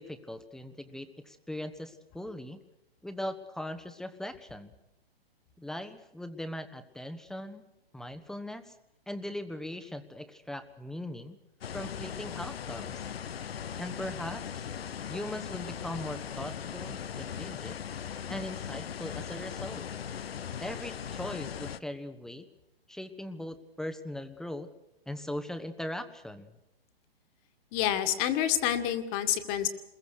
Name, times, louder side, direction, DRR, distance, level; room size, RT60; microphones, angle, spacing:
voice 1, 0.0-2.6 3.0-4.7 5.6-8.7 9.1-11.4 11.7-13.1 13.8-14.7 15.1-17.8 18.3-19.9 20.6-22.5 22.9-24.7 25.1-26.5, left 1 dB, ahead, 9 dB, 1.2 m, -40 dB
sound 1, 11.6-21.8, left 8 dB, 75° left, 1.0 m, -39 dB
voice 2, 27.7-29.7, left 11 dB, 30° left, 9 dB, 2.1 m, -28 dB
27.5 x 21.5 x 6.5 m, 0.89 s
hypercardioid pair, 130°, 30 cm